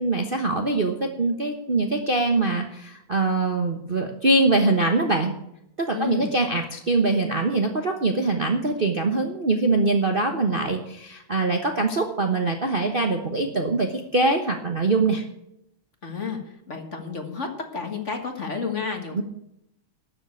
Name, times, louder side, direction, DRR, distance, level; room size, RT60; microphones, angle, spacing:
voice 1, 0.0-5.3 5.8-15.2 19.1-19.2, right 3 dB, 35° right, 3 dB, 1.0 m, -23 dB
voice 2, 5.9-6.3 16.0-16.4 16.7-19.2, left 5 dB, 35° left, 4 dB, 1.8 m, -31 dB
12.5 x 7.6 x 8.4 m, 0.79 s
omnidirectional pair, 2.3 m